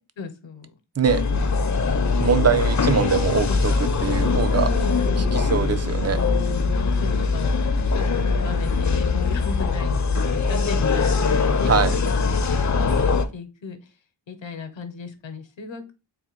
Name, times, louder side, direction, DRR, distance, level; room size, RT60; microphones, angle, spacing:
voice 1, 0.2-0.7 3.4-3.6 4.5-5.3 6.5-13.9 14.3-15.9, left 4 dB, 75° left, 0.8 m, -36 dB
sound 1, 1.1-13.2, left 4 dB, 40° left, 0.5 m, -22 dB
voice 2, 2.2-3.7 4.0-4.7 5.3-6.2 11.7-12.0, right 7 dB, 35° right, 0.5 m, -22 dB
3.7 x 2.2 x 4.3 m
wide cardioid pair, 65°, 46 cm